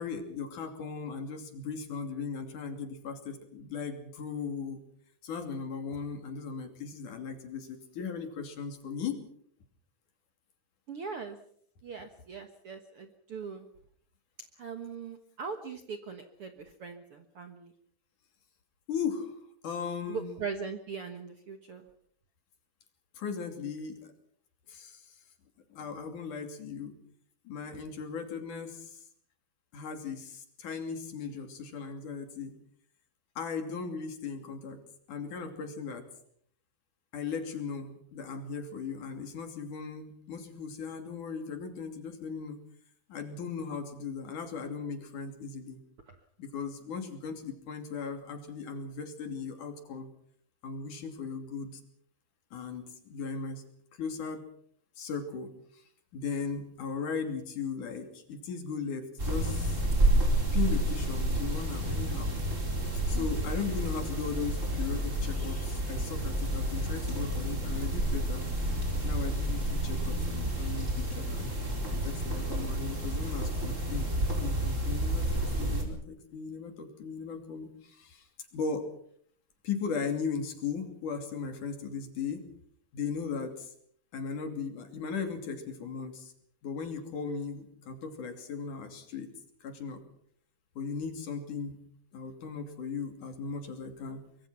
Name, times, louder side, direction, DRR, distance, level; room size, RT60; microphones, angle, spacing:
voice 1, 0.0-4.8 5.2-9.2 18.9-19.4 19.6-20.3 23.1-24.1 24.7-25.2 25.7-27.0 27.4-29.0 29.7-32.6 33.4-34.8 35.1-36.1 37.1-42.6 43.1-45.8 46.4-50.1 50.6-51.8 52.5-53.6 53.9-54.4 55.0-55.8 56.1-59.8 60.5-62.3 63.1-68.5 69.0-71.5 72.0-78.3 78.5-78.9 79.6-82.5 82.9-83.7 84.1-86.3 86.6-89.3 89.6-90.0 90.8-91.9 92.1-94.2, left 5 dB, 60° left, 6 dB, 4.1 m, -37 dB
voice 2, 10.9-11.4 11.8-13.7 14.6-17.7 20.1-21.8 46.1-46.2 63.1-63.6, right 5 dB, 55° right, 7 dB, 1.7 m, -40 dB
sound 1, 59.2-75.8, right 1 dB, 20° right, 4.5 m, -30 dB
24.0 x 23.0 x 5.7 m, 0.62 s
omnidirectional pair, 4.1 m